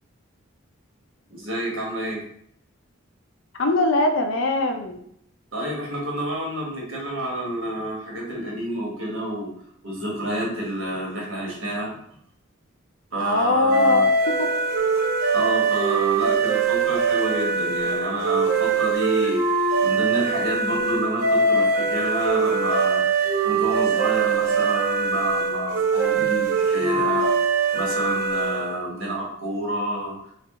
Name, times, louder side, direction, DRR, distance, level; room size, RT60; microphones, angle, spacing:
voice 1, 1.3-2.2 5.5-9.5 9.8-11.9 13.1-14.1 15.3-27.3 27.7-30.3, right 1 dB, 80° right, -3 dB, 1.3 m, -29 dB
voice 2, 3.6-5.0 13.2-14.0, left 2 dB, 70° left, 4 dB, 0.5 m, -21 dB
sound 1, 13.7-28.8, right 4 dB, 50° right, 0.6 m, -22 dB
3.3 x 2.4 x 3.6 m, 0.68 s
head